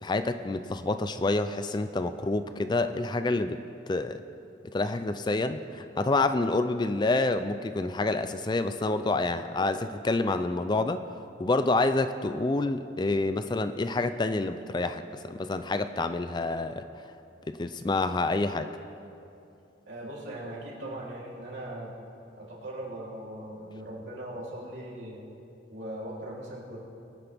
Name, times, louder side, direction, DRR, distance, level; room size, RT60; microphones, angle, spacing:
voice 1, 0.0-3.6 3.9-4.2 4.7-11.0 11.4-16.8 17.5-18.7, left 2 dB, 25° left, 10 dB, 0.4 m, -28 dB
voice 2, 19.8-21.9 22.3-25.2 25.7-26.8, right 1 dB, 70° right, -6 dB, 3.4 m, -39 dB
23.0 x 9.8 x 3.5 m, 2.7 s
head